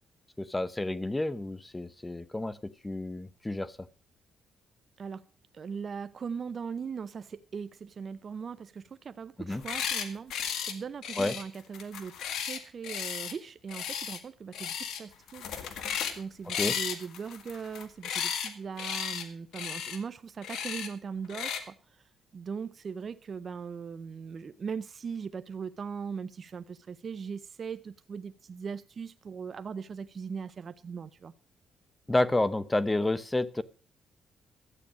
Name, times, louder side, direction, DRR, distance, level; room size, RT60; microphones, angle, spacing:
voice 1, 0.4-3.8 9.4-9.6 11.2-11.3 16.6-16.7 32.1-33.6, left 2 dB, 15° left, 0.8 m, -30 dB
voice 2, 5.5-15.9 16.1-21.8 22.3-31.3, right 6 dB, 45° right, 0.6 m, -39 dB
sound 1, 9.5-10.1 10.3-10.7 11.0-13.3 13.7-14.2 14.5-15.0 15.3-16.2 16.5-18.5 18.8-19.2 19.5-20.0 20.4-20.9 21.3-21.6, left 8 dB, 75° left, 1.7 m, -34 dB
13.0 x 8.6 x 6.1 m
cardioid pair, 90°, 0 cm